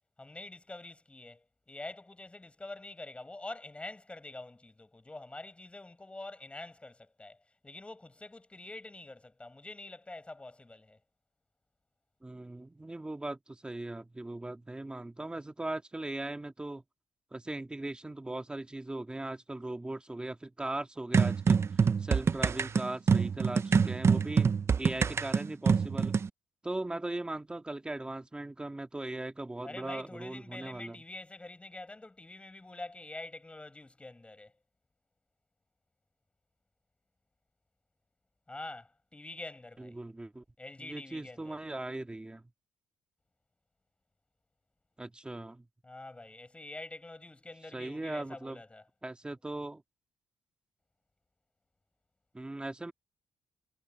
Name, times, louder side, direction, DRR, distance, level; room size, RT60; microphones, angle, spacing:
voice 1, 0.2-11.0 29.6-34.5 38.5-40.0 40.6-41.6 45.8-48.8, left 2 dB, 15° left, 5.4 m, -46 dB
voice 2, 12.2-16.8 17.3-24.5 24.8-26.2 26.6-31.0 39.8-40.4 40.8-42.4 45.0-45.7 47.7-48.6 49.0-49.8 52.3-52.9, right 2 dB, 10° right, 2.0 m, -39 dB
sound 1, 21.1-26.3, right 6 dB, 30° right, 0.6 m, -26 dB
cardioid pair, 120°, 8 cm